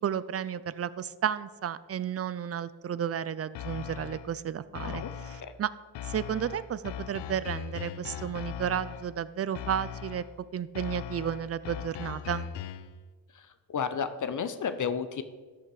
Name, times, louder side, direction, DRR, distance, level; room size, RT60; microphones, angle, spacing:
voice 1, 0.0-5.7 6.0-10.2 10.5-12.5, right 9 dB, 35° right, 17 dB, 0.4 m, -32 dB
sound 1, 3.5-4.4 4.7-5.6 5.9-9.2 9.5-10.4 10.7-13.0, left 9 dB, 80° left, 0.6 m, -39 dB
voice 2, 13.3-15.2, left 6 dB, 45° left, 11 dB, 0.8 m, -32 dB
13.0 x 5.8 x 4.8 m, 1.4 s
cardioid pair, 85°, 42 cm